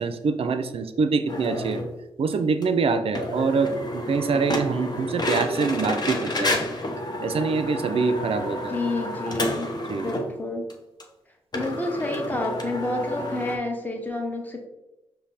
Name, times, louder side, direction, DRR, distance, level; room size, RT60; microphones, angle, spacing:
voice 1, 0.0-1.8 2.2-6.7 7.2-8.8 9.9-10.1, right 5 dB, 50° right, 9 dB, 0.5 m, -25 dB
sound 1, 1.3-1.9 2.3-2.4 2.6-2.7 3.1-10.3 10.7-10.8 11.0-11.1 11.5-13.6, left 1 dB, 35° left, 0.8 m, -30 dB
voice 2, 8.7-9.7 10.0-10.7 11.5-14.7, left 2 dB, 15° left, 2 dB, 1.1 m, -29 dB
5.0 x 2.1 x 4.1 m, 0.96 s
supercardioid pair, 45°, 12 cm